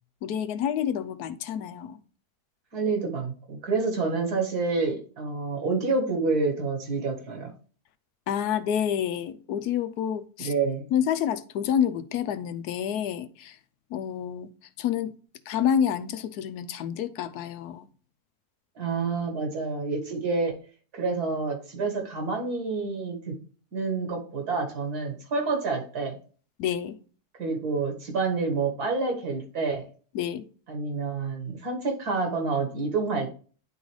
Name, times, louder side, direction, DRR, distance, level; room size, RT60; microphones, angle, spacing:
voice 1, 0.2-2.0 8.3-10.5 10.9-13.6 13.9-14.5 14.8-15.1 15.5-17.9 26.6-27.0 30.1-30.5, left 9 dB, 85° left, 1.1 m, -28 dB
voice 2, 2.7-7.5 10.4-10.9 18.8-20.6 20.9-23.3 23.7-26.2 27.4-29.8 30.7-33.3, right 4 dB, 75° right, 2.2 m, -28 dB
10.5 x 3.9 x 3.1 m
omnidirectional pair, 1.7 m